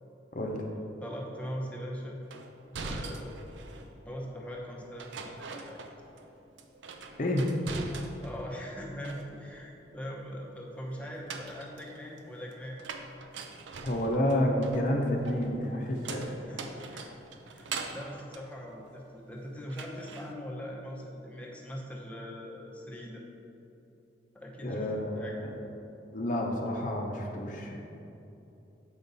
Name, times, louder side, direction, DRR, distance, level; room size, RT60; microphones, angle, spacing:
voice 1, 0.3-0.6 7.2-7.5 13.8-16.3 24.6-25.5 26.1-27.9, left 1 dB, 45° left, 1 dB, 0.7 m, -30 dB
voice 2, 1.0-2.2 2.8-3.3 4.1-5.8 8.2-12.8 16.4-17.1 17.5-23.2 24.3-24.9 25.2-25.3, equal, 10° left, -2 dB, 0.8 m, -41 dB
sound 1, 2.3-3.9 5.0-6.3 6.6-8.5 8.8-9.6 11.0-19.3 19.7-20.3, right 4 dB, 90° right, 0.5 m, -42 dB
7.0 x 5.4 x 4.0 m, 2.9 s
head